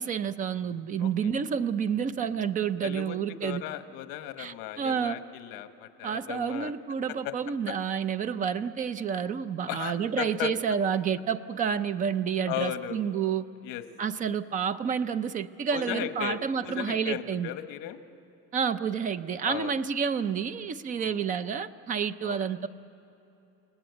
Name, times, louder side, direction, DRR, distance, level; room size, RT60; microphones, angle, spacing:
voice 1, 0.0-3.6 4.4-5.2 6.0-13.4 14.0-17.5 18.5-22.7, right 7 dB, 25° right, 14 dB, 0.5 m, -29 dB
voice 2, 2.8-6.7 7.2-7.3 7.7-7.8 9.7-10.5 12.5-13.0 13.6-13.8 15.7-18.0 19.4-19.8 21.0-21.2 22.2-22.4, left 12 dB, 70° left, 9 dB, 1.2 m, -36 dB
30.0 x 18.5 x 8.1 m, 2.9 s
cardioid pair, 170°, 36 cm